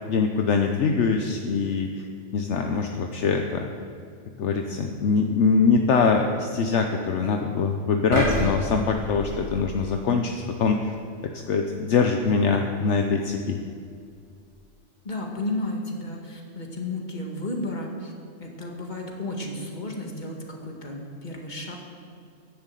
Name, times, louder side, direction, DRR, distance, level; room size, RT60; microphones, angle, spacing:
voice 1, 0.1-1.9 2.3-3.7 4.4-10.9 11.2-13.6, left 5 dB, 70° left, 3 dB, 1.1 m, -23 dB
sound 1, 8.1-10.3 10.8-10.9, equal, 65° right, 4.1 m, -28 dB
voice 2, 15.0-18.1 18.4-21.8, left 1 dB, 35° left, 0 dB, 1.9 m, -33 dB
10.5 x 10.5 x 7.6 m, 2.3 s
omnidirectional pair, 1.3 m